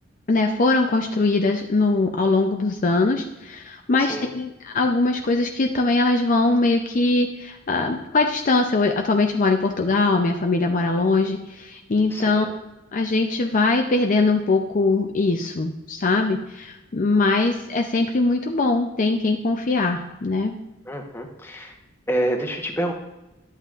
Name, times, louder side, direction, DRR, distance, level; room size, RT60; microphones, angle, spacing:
voice 1, 0.3-12.5 12.9-20.5, left 3 dB, 45° left, 3 dB, 0.5 m, -21 dB
voice 2, 3.9-4.3 12.1-12.6 20.9-21.7 22.1-22.9, right 1 dB, 10° left, 2 dB, 1.1 m, -28 dB
11.0 x 8.1 x 2.5 m, 0.97 s
head